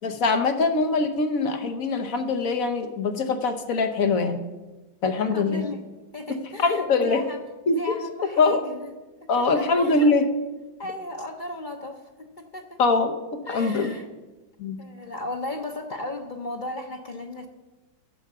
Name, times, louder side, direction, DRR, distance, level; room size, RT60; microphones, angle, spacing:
voice 1, 0.0-4.4 5.0-5.6 6.6-7.2 7.7-7.8 8.4-8.6 9.3-10.3 12.8-13.9 14.6-14.8, left 3 dB, 55° left, 7 dB, 1.2 m, -23 dB
voice 2, 5.2-5.8 6.1-7.4 7.7-8.9 9.2-10.1 10.8-12.8 13.5-14.1 14.8-17.5, left 2 dB, 70° left, 3 dB, 0.4 m, -36 dB
11.0 x 7.2 x 6.7 m, 1.1 s
omnidirectional pair, 2.0 m